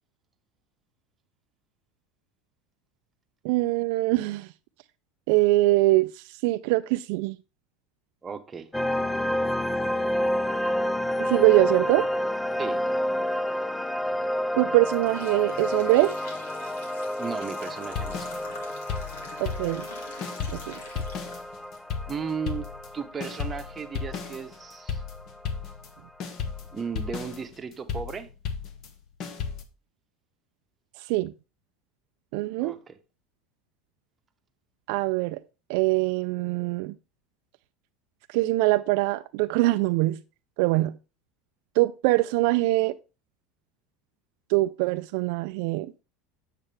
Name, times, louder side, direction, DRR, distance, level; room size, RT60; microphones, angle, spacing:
voice 1, 3.4-4.5 5.3-7.4 11.2-12.1 14.6-16.1 19.4-19.9 20.5-20.8 31.1-31.3 32.3-32.7 34.9-35.4 35.7-36.9 38.3-40.2 40.6-41.0 41.8-42.9 44.5-45.9, right 20 dB, 70° right, 0.3 m, -23 dB
voice 2, 8.2-8.7 12.6-12.8 17.2-18.4 22.1-22.7 22.9-25.0 26.7-28.3 32.6-32.9, right 6 dB, 20° right, 0.9 m, -35 dB
sound 1, 8.7-25.7, left 1 dB, 10° left, 0.4 m, -30 dB
sound 2, 14.0-14.2 14.6-21.8 22.2-22.3 23.2-23.3 23.8-23.9 24.3-24.6, left 3 dB, 90° left, 2.3 m, -45 dB
sound 3, 17.9-19.9 20.2-25.9 26.2-29.6, left 6 dB, 45° left, 1.1 m, -35 dB
8.8 x 6.6 x 3.3 m
supercardioid pair, 130°, 0 cm